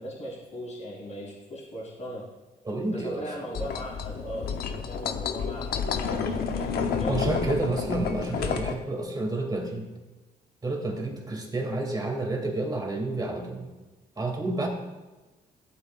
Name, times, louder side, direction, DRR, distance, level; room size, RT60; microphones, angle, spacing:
voice 1, 0.0-2.2 2.9-7.2, equal, 45° left, -8 dB, 3.2 m, -38 dB
voice 2, 2.6-3.6 7.1-9.9 10.6-13.7 14.2-14.7, right 2 dB, 25° right, 0 dB, 2.4 m, -30 dB
sound 1, 3.5-8.7, left 6 dB, 70° left, 0.9 m, -30 dB
14.5 x 8.2 x 2.4 m, 1.2 s
cardioid pair, 90°, 17 cm